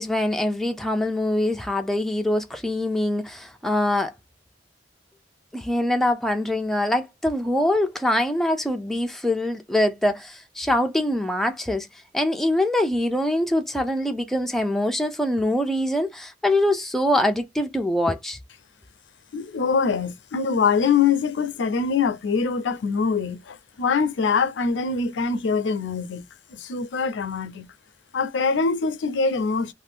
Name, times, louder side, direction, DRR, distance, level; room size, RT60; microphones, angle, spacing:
voice 1, 0.0-4.1 5.5-11.9 12.1-18.4, left 1 dB, ahead, 0.3 m, -24 dB
voice 2, 19.3-27.7 28.1-29.7, left 5 dB, 75° left, 0.5 m, -24 dB
2.6 x 2.2 x 3.4 m
head